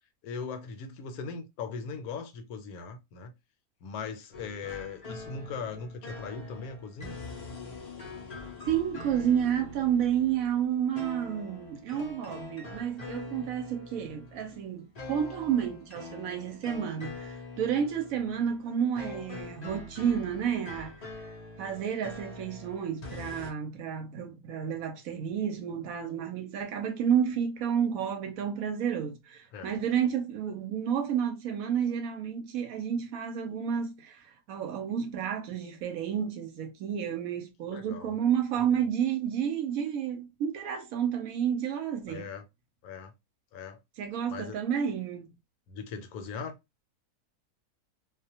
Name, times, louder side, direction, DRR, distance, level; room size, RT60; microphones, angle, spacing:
voice 1, 0.2-3.3 3.8-7.2 29.5-29.8 37.7-38.2 42.1-42.4 42.8-43.1 43.5-43.8 44.3-44.6 45.7-46.5, left 5 dB, 75° left, 1.0 m, -39 dB
sound 1, 4.3-23.5, left 2 dB, 50° left, 0.4 m, -44 dB
voice 2, 8.7-21.0 21.6-34.2 34.5-42.3 44.0-45.3, right 8 dB, 70° right, 0.9 m, -30 dB
2.4 x 2.1 x 2.7 m
omnidirectional pair, 1.6 m